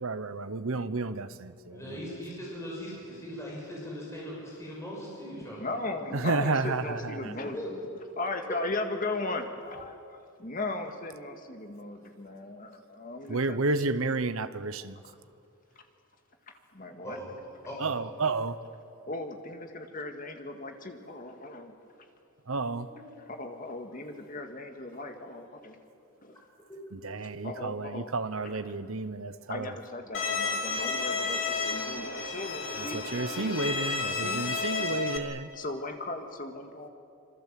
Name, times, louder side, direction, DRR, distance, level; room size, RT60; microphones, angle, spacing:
voice 1, 0.0-1.3 1.7-1.8 6.2-6.8 7.2-7.3 13.3-14.9 17.8-18.6 22.5-22.9 27.0-29.7 33.1-35.5, right 3 dB, 70° right, 1.0 m, -31 dB
voice 2, 1.7-5.7 7.5-7.7 17.0-17.4 17.6-18.3 22.9-23.2 26.7-26.8, equal, 15° left, 6.4 m, -40 dB
voice 3, 5.6-7.8 8.2-13.8 16.7-17.2 19.1-21.7 23.3-25.8 26.2-26.4 27.4-28.1 28.4-28.7 29.5-33.0 33.3-33.5 34.1-34.4 35.5-36.9, left 2 dB, 40° left, 2.0 m, -37 dB
Bowed string instrument, 30.1-35.2, left 4 dB, 60° left, 2.0 m, -31 dB
26.0 x 24.5 x 7.6 m
head